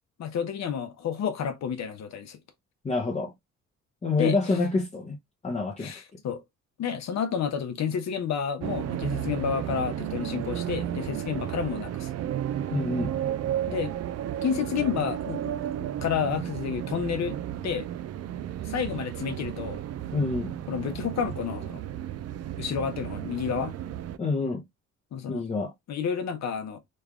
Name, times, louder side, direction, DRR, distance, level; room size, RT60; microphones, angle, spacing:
voice 1, 0.2-2.4 4.2-4.6 5.8-6.4 6.8-12.1 13.7-13.9 14.4-15.4 15.8-17.4 17.6-17.9 18.6-19.8 20.7-21.8 22.6-23.7 25.1-25.4 25.9-26.8, left 7 dB, 60° left, 0.8 m, -30 dB
voice 2, 2.8-3.3 4.0-5.2 5.4-5.9 12.7-13.1 20.1-20.5 24.2-24.6 25.3-25.7, left 3 dB, 20° left, 0.7 m, -27 dB
sound 1, 8.6-24.2, right 11 dB, 55° right, 0.4 m, -33 dB
3.2 x 2.3 x 3.5 m
cardioid pair, 90°, 30 cm